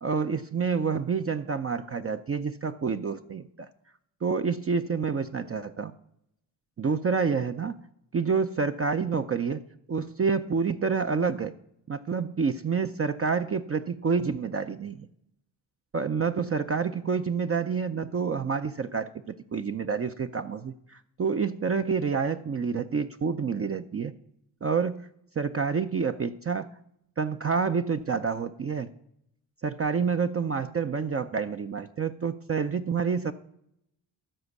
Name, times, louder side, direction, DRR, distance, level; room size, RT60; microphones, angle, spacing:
voice 1, 0.0-3.7 4.2-5.9 6.8-7.8 8.1-9.6 9.9-11.5 11.9-15.1 15.9-24.1 24.6-25.1 25.4-26.7 27.2-28.9 29.6-33.3, right 5 dB, 30° right, 7 dB, 0.5 m, -28 dB
13.5 x 5.0 x 8.2 m, 0.76 s
cardioid pair, 70°, 46 cm